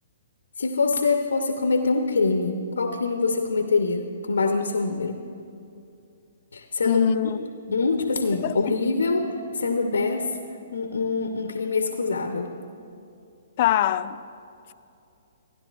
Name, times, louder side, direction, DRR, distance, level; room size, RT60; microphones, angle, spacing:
voice 1, 0.6-5.2 6.5-7.0 7.4-10.4 10.7-12.5, left 4 dB, 80° left, 0.7 m, -24 dB
voice 2, 6.8-7.4 7.7-7.8 8.4-8.8 13.6-14.2, left 10 dB, 45° left, 0.3 m, -23 dB
15.5 x 10.5 x 2.4 m
hypercardioid pair, 130°, 0 cm